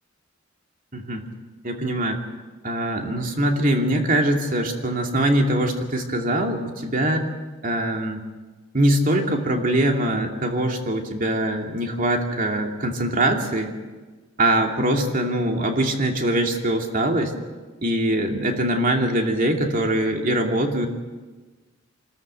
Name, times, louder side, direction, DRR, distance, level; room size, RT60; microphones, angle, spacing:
voice 1, 0.9-1.3 1.6-2.2 2.6-7.3 7.6-8.2 8.7-13.7 14.4-17.3 17.8-20.9, right 1 dB, 45° right, 2 dB, 2.6 m, -22 dB
26.5 x 13.5 x 7.8 m, 1.3 s
head